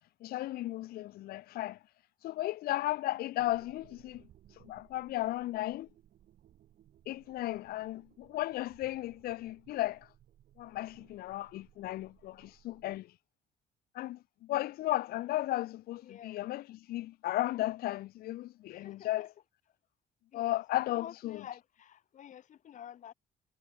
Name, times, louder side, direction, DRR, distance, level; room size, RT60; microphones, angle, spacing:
voice 1, 0.2-1.8 2.2-4.2 4.6-5.9 7.1-10.1 10.6-13.1 13.9-19.3 20.3-21.4, left 16 dB, 65° left, 0.5 m, -35 dB
sound 1, 3.4-13.0, right 11 dB, 60° right, 4.5 m, -63 dB
voice 2, 16.0-16.5 18.7-19.3 20.3-20.6 20.9-23.1, left 10 dB, 50° left, 1.1 m, -49 dB
cardioid pair, 110°, 17 cm